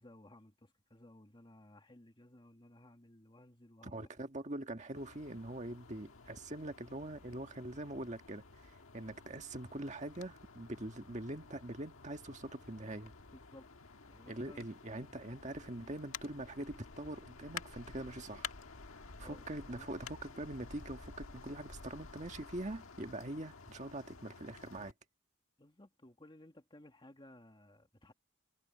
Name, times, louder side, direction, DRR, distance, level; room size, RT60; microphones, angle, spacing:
voice 1, 0.0-4.1 13.3-13.7 14.1-14.7 19.2-19.9 25.6-28.1, left 1 dB, 25° left, 1.9 m, -58 dB
voice 2, 3.8-13.1 14.3-18.5 19.2-24.9, right 1 dB, 35° right, 1.7 m, -43 dB
sound 1, 4.9-24.9, left 5 dB, 85° left, 1.6 m, -52 dB
head